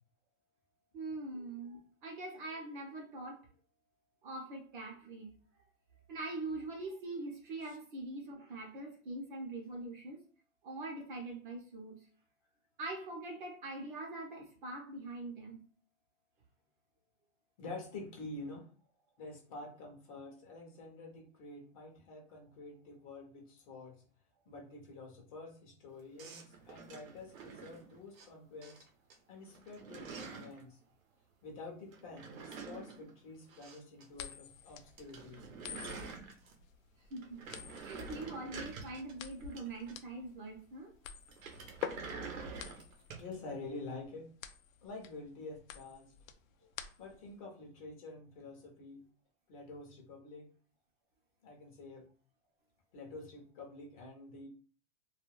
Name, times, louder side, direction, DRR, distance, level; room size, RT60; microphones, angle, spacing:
voice 1, 0.9-3.4 4.2-5.4 6.1-10.2 10.6-12.1 12.8-15.6 37.1-37.4 37.7-40.9, right 2 dB, 40° right, 1 dB, 0.6 m, -43 dB
voice 2, 17.6-18.7 19.2-24.0 24.5-28.8 29.3-30.8 31.4-35.4 42.7-42.8 43.2-44.3 44.8-46.1 47.0-49.0 49.5-50.5 51.4-52.1 52.9-54.5, left 2 dB, 30° left, -1 dB, 0.6 m, -48 dB
sound 1, 26.2-28.3 28.6-29.2 29.4-30.6 31.9-34.1 34.3-34.4 34.7-34.8 35.0-36.7 37.1-40.2 41.3-43.3, right 4 dB, 85° right, 0.8 m, -47 dB
sound 2, 34.1-47.3, left 9 dB, 80° left, 0.5 m, -47 dB
2.3 x 2.2 x 3.0 m, 0.41 s
hypercardioid pair, 160°, 40 cm